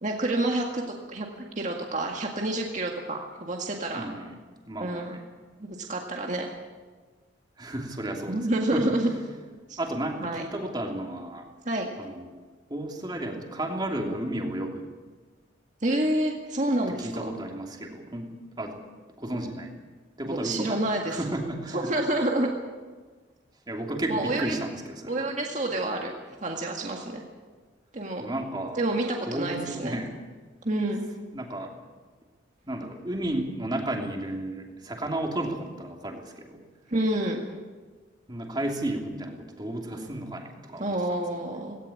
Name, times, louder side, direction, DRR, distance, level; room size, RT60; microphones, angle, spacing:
voice 1, 0.0-1.3 1.6-4.1 4.8-5.2 5.6-6.5 8.3-9.1 9.7-9.8 10.2-10.4 11.7-11.9 15.8-17.3 20.2-21.2 21.7-22.5 24.1-24.6 25.1-26.1 26.4-27.2 27.9-28.2 28.8-30.0 30.6-31.0 36.9-37.4 40.8-41.8, right 1 dB, 40° right, 1 dB, 2.0 m, -28 dB
voice 2, 3.9-4.4 4.7-5.2 7.6-8.4 8.7-9.0 9.8-11.5 12.0-12.3 12.7-14.9 16.9-18.8 19.2-19.7 20.2-20.8 21.1-21.9 23.7-25.2 28.2-28.8 29.3-30.1 31.3-31.7 32.6-36.6 38.3-41.2, right 1 dB, 25° right, 1 dB, 2.9 m, -33 dB
18.0 x 18.0 x 8.6 m, 1.4 s
head